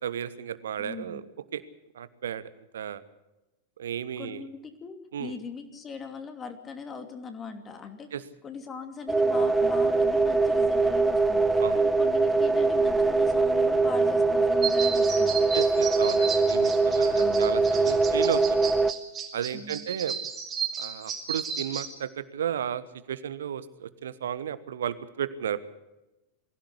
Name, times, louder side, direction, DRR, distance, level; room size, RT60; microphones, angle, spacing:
voice 1, 0.0-1.2 1.5-1.6 1.9-3.0 3.8-4.5 5.1-5.3 8.1-8.2 11.6-11.8 15.5-18.7 19.3-20.2 20.8-25.7, right 9 dB, 65° right, 16 dB, 1.2 m, -33 dB
voice 2, 0.8-1.2 4.2-8.1 8.4-15.5 17.1-17.7 19.5-19.9, left 5 dB, 20° left, 6 dB, 2.8 m, -40 dB
sound 1, 9.1-18.9, right 3 dB, 10° right, 0.9 m, -23 dB
sound 2, 14.6-21.9, right 7 dB, 25° right, 3.5 m, -34 dB
22.5 x 16.0 x 8.3 m, 0.98 s
figure-of-eight pair, 90°, 0 cm